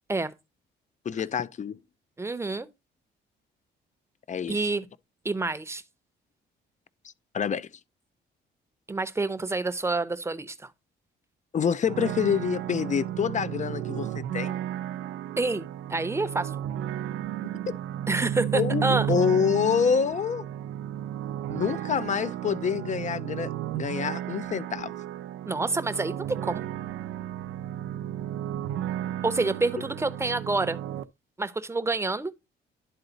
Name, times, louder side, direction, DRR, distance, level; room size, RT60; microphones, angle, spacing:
voice 1, 1.0-1.8 4.3-4.6 7.3-7.7 11.5-14.6 18.5-20.5 21.5-24.9, left 7 dB, 40° left, 0.5 m, -27 dB
voice 2, 2.2-2.7 4.5-4.9 5.2-5.8 8.9-10.6 15.4-16.5 18.1-19.1 25.5-26.2 26.4-26.6 29.2-30.8 31.4-32.3, right 3 dB, 15° right, 0.8 m, -27 dB
sound 1, 11.8-31.0, right 11 dB, 85° right, 0.5 m, -33 dB
11.0 x 3.9 x 3.9 m
cardioid pair, 90°, 20 cm